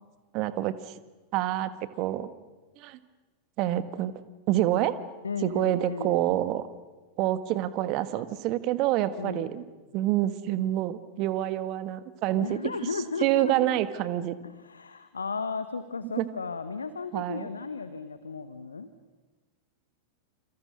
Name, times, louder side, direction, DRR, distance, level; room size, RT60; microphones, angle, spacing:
voice 1, 0.3-0.9 1.3-2.3 2.8-3.0 3.6-4.2 4.5-4.9 5.4-6.7 7.2-9.6 9.9-12.6 13.2-14.3 16.2-16.3 17.1-17.5, right 14 dB, 40° right, 13 dB, 1.5 m, -27 dB
voice 2, 5.2-6.2 9.2-9.5 12.4-13.8 14.4-18.9, left 4 dB, 75° left, 11 dB, 1.2 m, -35 dB
28.5 x 28.0 x 6.7 m, 1.3 s
figure-of-eight pair, 90°, 0 cm